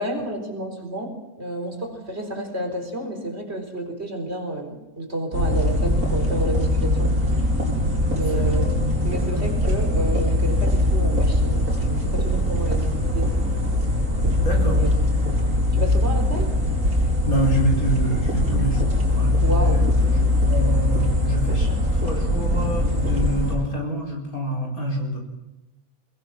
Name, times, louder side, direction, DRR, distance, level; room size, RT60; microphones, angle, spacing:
voice 1, 0.0-7.1 8.1-8.7 9.0-13.5 14.5-14.9 15.7-16.5 19.4-19.8, right 1 dB, 45° right, 4 dB, 4.5 m, -30 dB
sound 1, 5.3-23.6, left 1 dB, 90° right, 5.5 m, -21 dB
voice 2, 14.4-14.8 17.2-25.2, right 1 dB, 75° left, -1 dB, 5.1 m, -27 dB
23.5 x 21.0 x 6.0 m, 1.0 s
omnidirectional pair, 1.5 m